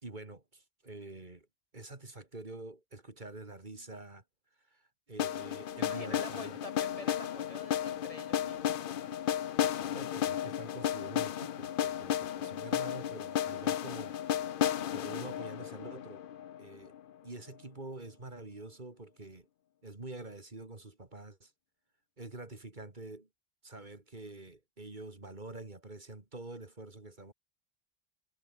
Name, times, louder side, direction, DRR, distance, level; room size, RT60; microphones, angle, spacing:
voice 1, 0.0-1.5 1.7-4.2 4.7-6.6 9.6-14.1 14.9-16.3 16.6-17.0 17.2-19.5 19.8-21.5 22.2-23.3 23.6-27.3, right 2 dB, 45° right, 2.8 m, -46 dB
sound 1, 5.2-17.1, left 10 dB, 60° left, 0.7 m, -34 dB
voice 2, 5.7-9.2 12.4-12.6, left 1 dB, 35° left, 1.6 m, -47 dB
omnidirectional pair, 1.1 m